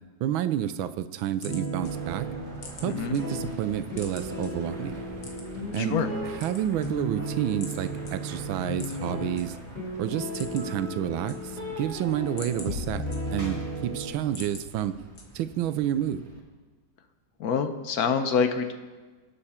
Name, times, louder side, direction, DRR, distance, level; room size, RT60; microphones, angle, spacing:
voice 1, 0.2-2.3 2.8-5.0 5.7-9.6 10.0-15.0 15.3-16.3, right 11 dB, 85° right, 13 dB, 1.5 m, -30 dB
sound 1, 1.3-3.2 3.6-4.5 5.2-5.8 6.3-7.2 7.6-7.8 8.1-8.2 8.7-9.4 9.8-9.9 10.2-10.8 11.1-11.8 12.2-13.6 14.0-14.7 15.2-15.6, left 3 dB, 80° left, 2.6 m, -44 dB
sound 2, 1.4-14.1, equal, 25° left, 4.2 m, -35 dB
sound 3, 1.8-16.4, right 1 dB, 35° right, 2.5 m, -46 dB
voice 2, 5.8-6.1 17.4-18.7, left 6 dB, 55° left, 8 dB, 1.2 m, -26 dB
24.0 x 8.5 x 4.3 m, 1.4 s
omnidirectional pair, 2.2 m